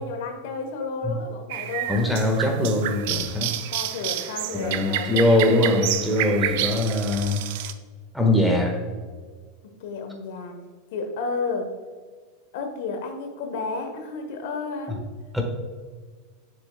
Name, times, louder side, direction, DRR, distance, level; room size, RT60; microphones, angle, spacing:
voice 1, 0.0-2.1 3.7-5.7 6.7-6.8 9.8-10.6 10.9-11.7 12.5-15.0, left 3 dB, 65° left, 5 dB, 1.0 m, -32 dB
sound 1, 1.5-7.7, right 12 dB, 65° right, 0.4 m, -29 dB
voice 2, 1.9-3.5 4.5-7.4 8.1-8.8 15.3-15.4, left 1 dB, ahead, 0 dB, 1.4 m, -22 dB
6.9 x 6.8 x 2.2 m, 1.5 s
hypercardioid pair, 100°, 0 cm